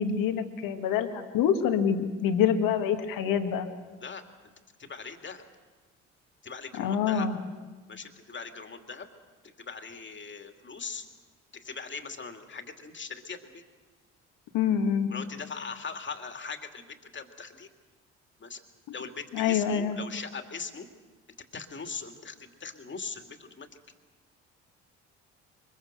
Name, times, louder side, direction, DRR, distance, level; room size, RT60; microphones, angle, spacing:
voice 1, 0.0-3.7 6.8-7.4 14.5-15.1 19.3-20.0, left 8 dB, 70° left, 6 dB, 2.0 m, -26 dB
voice 2, 4.8-5.4 6.4-7.3 7.9-9.1 9.4-11.0 11.5-13.6 15.1-17.7 18.4-18.6 18.9-20.9 21.5-23.7, left 5 dB, 35° left, 6 dB, 2.5 m, -40 dB
23.5 x 22.0 x 6.7 m, 1.4 s
hypercardioid pair, 60°, 35 cm